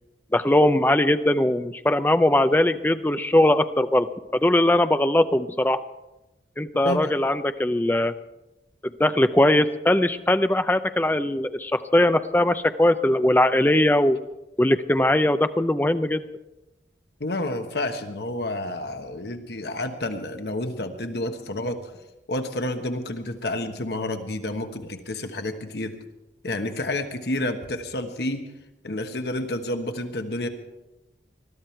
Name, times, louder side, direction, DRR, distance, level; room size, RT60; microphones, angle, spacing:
voice 1, 0.3-4.1 4.4-5.8 6.6-8.1 9.0-14.2 14.6-16.2, left 1 dB, 10° left, 10 dB, 0.5 m, -20 dB
voice 2, 17.2-21.9 22.3-25.9 26.4-28.4 28.8-30.5, left 1 dB, 70° left, 6 dB, 1.3 m, -29 dB
20.5 x 13.0 x 4.5 m, 0.97 s
head